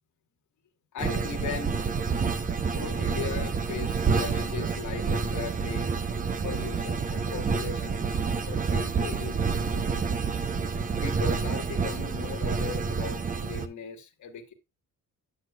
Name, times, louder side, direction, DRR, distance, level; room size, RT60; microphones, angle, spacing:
voice 1, 0.9-1.8 2.7-6.0 6.4-8.2 8.5-10.1 11.0-14.5, left 7 dB, 55° left, 1.4 m, -38 dB
sound 1, 1.0-13.7, right 5 dB, 25° right, 0.5 m, -28 dB
8.1 x 7.7 x 2.2 m
cardioid pair, 110°, 36 cm